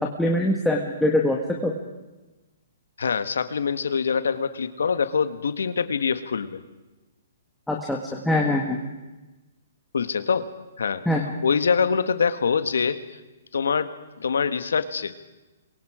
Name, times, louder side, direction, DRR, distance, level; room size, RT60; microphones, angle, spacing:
voice 1, 0.2-1.4 1.6-1.7 7.7-8.8 11.1-11.2, left 1 dB, 5° left, -2 dB, 1.8 m, -23 dB
voice 2, 3.0-6.6 9.9-10.5 10.8-11.0 11.4-13.0 13.5-13.9 14.2-15.2, left 6 dB, 85° left, 11 dB, 1.5 m, -24 dB
27.5 x 23.0 x 5.0 m, 1.1 s
hypercardioid pair, 155°, 0 cm